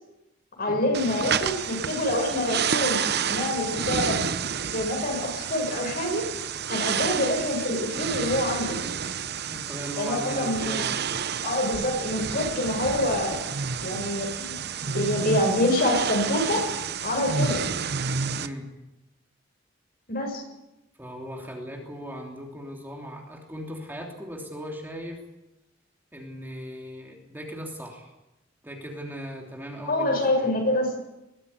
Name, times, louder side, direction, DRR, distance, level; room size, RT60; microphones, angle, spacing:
voice 1, 0.6-3.0 3.3-4.2 4.7-6.2 6.7-8.8 10.0-10.8 11.4-13.4 13.8-14.6 14.8-16.6 17.0-17.6 20.1-20.4 29.9-31.0, left 1 dB, 50° left, 2 dB, 6.9 m, -26 dB
sound 1, 0.9-18.5, right 7 dB, 55° right, 0.9 m, -30 dB
voice 2, 9.5-11.1 18.4-18.7 21.0-25.2 26.1-28.1 28.6-30.5, equal, 10° right, 0 dB, 3.1 m, -38 dB
21.5 x 14.0 x 9.8 m, 0.94 s
head